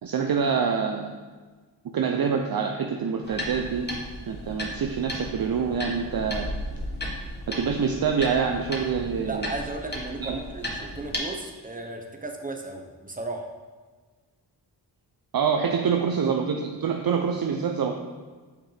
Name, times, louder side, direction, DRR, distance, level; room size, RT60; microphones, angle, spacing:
voice 1, 0.0-1.2 1.9-3.9 4.3-6.5 7.5-9.5 10.3-10.4 15.3-17.9, right 6 dB, 55° right, 3 dB, 0.7 m, -26 dB
sound 1, 3.2-11.2, left 1 dB, 25° left, 1.7 m, -35 dB
voice 2, 9.2-13.5 15.6-16.2, right 2 dB, 20° right, 2 dB, 1.1 m, -35 dB
8.2 x 5.1 x 3.5 m, 1.4 s
cardioid pair, 55°, 44 cm